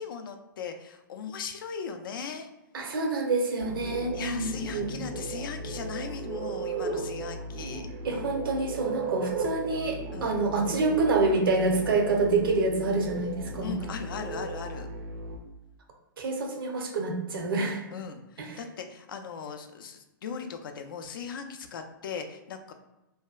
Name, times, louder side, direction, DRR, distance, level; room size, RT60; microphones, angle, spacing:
voice 1, 0.0-2.5 4.1-7.9 10.1-10.4 13.6-14.9 17.9-22.7, left 6 dB, 75° left, 6 dB, 0.4 m, -38 dB
voice 2, 2.7-4.9 8.0-13.7 16.2-17.9 18.4-18.6, right 3 dB, 80° right, 2 dB, 0.7 m, -27 dB
sound 1, 3.6-15.4, right 3 dB, 35° right, 0.4 m, -36 dB
2.7 x 2.2 x 2.3 m, 0.96 s
hypercardioid pair, 125°, 12 cm